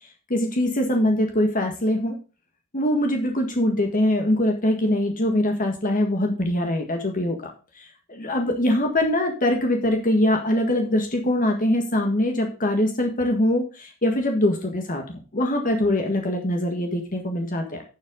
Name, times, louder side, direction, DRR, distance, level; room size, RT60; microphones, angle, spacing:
voice 1, 0.3-2.1 2.7-7.5 7.8-17.8, left 1 dB, 40° left, 3 dB, 1.7 m, -23 dB
11.0 x 7.6 x 3.8 m, 0.34 s
head